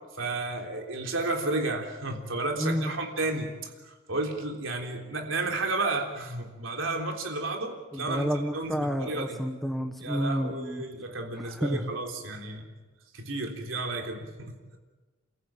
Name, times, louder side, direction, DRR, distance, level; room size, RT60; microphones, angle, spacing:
voice 1, 0.2-3.5 3.8-9.4 10.0-12.6 13.1-14.8, right 2 dB, 80° right, 3 dB, 3.6 m, -32 dB
voice 2, 2.6-2.9 7.9-10.8 11.6-11.9, equal, ahead, 6 dB, 1.0 m, -30 dB
29.0 x 14.5 x 8.8 m, 1.2 s
head